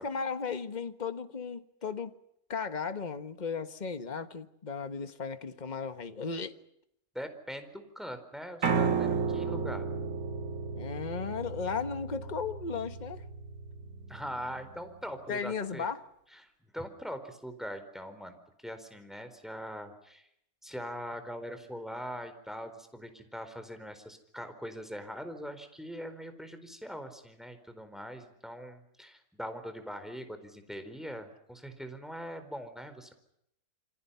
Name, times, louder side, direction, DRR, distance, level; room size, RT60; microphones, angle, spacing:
voice 1, 0.0-2.1 2.5-6.6 10.7-13.2 15.3-16.0, left 5 dB, 30° left, 1.5 m, -35 dB
voice 2, 7.1-9.9 14.1-15.9 16.3-20.3 20.6-33.1, equal, ahead, 4.3 m, -42 dB
Piano, 8.6-14.8, right 5 dB, 70° right, 1.9 m, -33 dB
28.5 x 26.0 x 5.8 m
omnidirectional pair, 1.6 m